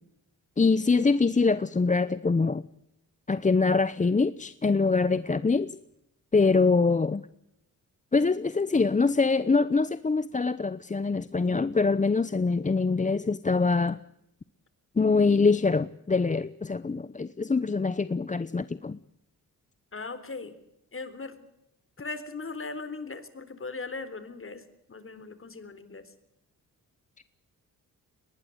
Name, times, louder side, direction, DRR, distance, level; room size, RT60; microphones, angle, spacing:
voice 1, 0.6-2.6 3.3-5.8 6.3-7.2 8.1-14.0 15.0-19.0, left 4 dB, 20° left, 15 dB, 0.8 m, -24 dB
voice 2, 19.9-20.6 20.9-21.4 22.0-24.6 24.9-26.1, left 3 dB, 35° left, 12 dB, 3.9 m, -38 dB
22.0 x 20.0 x 8.0 m, 0.83 s
cardioid pair, 75°, 35 cm